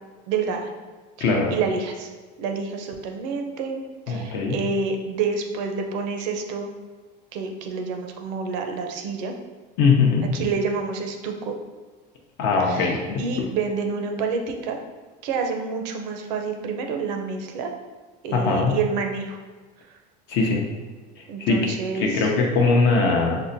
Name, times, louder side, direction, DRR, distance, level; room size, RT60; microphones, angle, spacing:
voice 1, 0.3-0.7 1.2-2.1 2.4-6.7 7.3-9.3 10.2-11.6 12.6-14.8 15.2-17.7 18.2-19.4 19.8-20.0 20.5-20.7 21.3-22.3, right 5 dB, 85° right, 4 dB, 0.6 m, -28 dB
voice 2, 4.1-4.5 9.8-10.3 12.4-13.2 18.3-18.7 20.3-20.6 21.4-23.4, left 4 dB, 55° left, 0 dB, 0.6 m, -21 dB
5.4 x 2.1 x 2.6 m, 1.4 s
cardioid pair, 145°, 21 cm